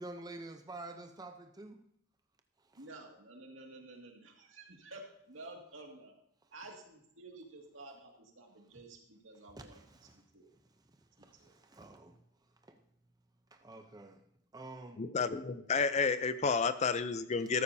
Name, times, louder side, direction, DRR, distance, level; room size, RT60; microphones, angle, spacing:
voice 1, 0.0-1.8 2.7-2.8 9.6-10.2 11.2-12.2 12.6-12.8 13.5-14.2 14.5-15.0, right 2 dB, 20° right, 0.6 m, -48 dB
voice 2, 2.7-6.2 6.5-9.8 10.1-10.5 11.2-11.5, right 2 dB, 80° right, 2.2 m, -52 dB
voice 3, 15.0-17.6, left 5 dB, 35° left, 0.5 m, -31 dB
13.5 x 13.0 x 2.7 m
head